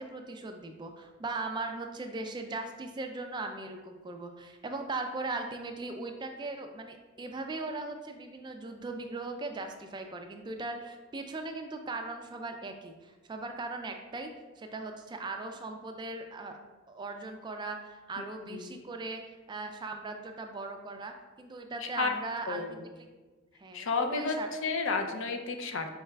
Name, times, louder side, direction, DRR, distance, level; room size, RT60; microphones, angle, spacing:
voice 1, 0.0-14.3 14.6-16.6 16.9-23.1 23.6-24.5, right 3 dB, 20° right, 5 dB, 0.3 m, -39 dB
voice 2, 18.2-18.8 22.0-22.1 22.5-22.8 23.7-25.9, left 4 dB, 65° left, 5 dB, 0.5 m, -32 dB
4.6 x 3.2 x 3.3 m, 1.3 s
head